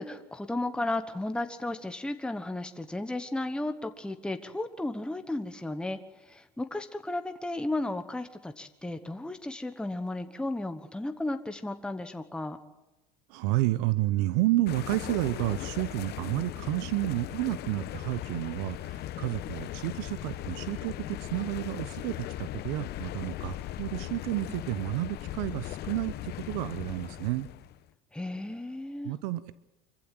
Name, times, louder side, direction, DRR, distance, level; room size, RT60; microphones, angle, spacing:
voice 1, 0.0-12.6 28.1-29.1, left 2 dB, 5° left, 7 dB, 1.2 m, -34 dB
voice 2, 13.3-27.5 29.0-29.5, right 17 dB, 80° right, 15 dB, 0.9 m, -31 dB
sound 1, 14.7-27.8, left 14 dB, 55° left, 1.1 m, -38 dB
25.5 x 15.0 x 7.7 m, 1.0 s
supercardioid pair, 110°, 21 cm